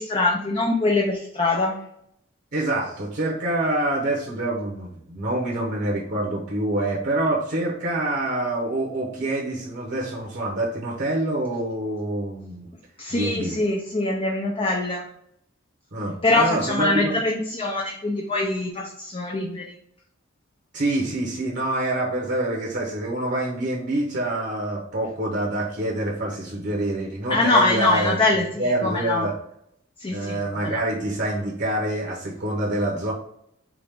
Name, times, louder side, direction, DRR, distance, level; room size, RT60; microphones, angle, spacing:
voice 1, 0.0-1.8 13.0-15.1 16.2-19.7 27.3-29.3 30.0-30.8, left 2 dB, 25° left, -1 dB, 0.5 m, -23 dB
voice 2, 2.5-12.7 13.1-13.5 15.9-17.1 20.7-28.2 28.5-29.3 30.1-33.1, right 1 dB, 55° right, -3 dB, 0.9 m, -26 dB
4.8 x 2.5 x 3.5 m, 0.73 s
head